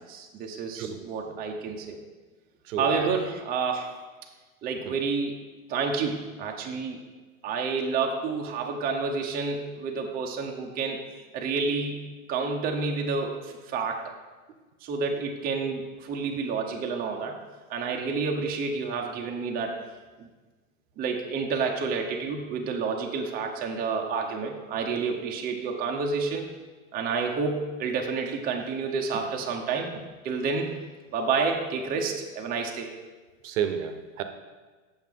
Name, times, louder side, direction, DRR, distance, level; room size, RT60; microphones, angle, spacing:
voice 1, 0.0-2.0 2.8-3.9 4.6-5.4 5.7-7.0 7.4-11.0 11.3-14.0 14.8-17.4 17.7-19.7 21.0-26.5 26.9-29.9 30.2-30.8 31.1-32.9, right 4 dB, 20° right, 1 dB, 0.6 m, -29 dB
voice 2, 2.7-3.2 4.9-5.0 33.4-34.2, right 9 dB, 65° right, 8 dB, 0.8 m, -31 dB
7.1 x 5.8 x 3.6 m, 1.3 s
hypercardioid pair, 125°, 42 cm